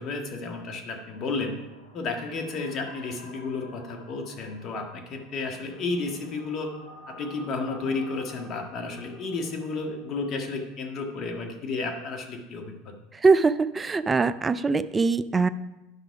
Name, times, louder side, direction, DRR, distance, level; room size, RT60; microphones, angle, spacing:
voice 1, 0.0-1.6 1.9-6.7 7.1-12.9, left 3 dB, 45° left, 3 dB, 1.6 m, -32 dB
sound 1, 1.1-11.2, left 2 dB, 85° left, 1.8 m, -50 dB
voice 2, 13.1-15.5, right 4 dB, 20° right, 13 dB, 0.4 m, -22 dB
9.9 x 6.0 x 4.7 m, 0.99 s
hypercardioid pair, 90°, 0 cm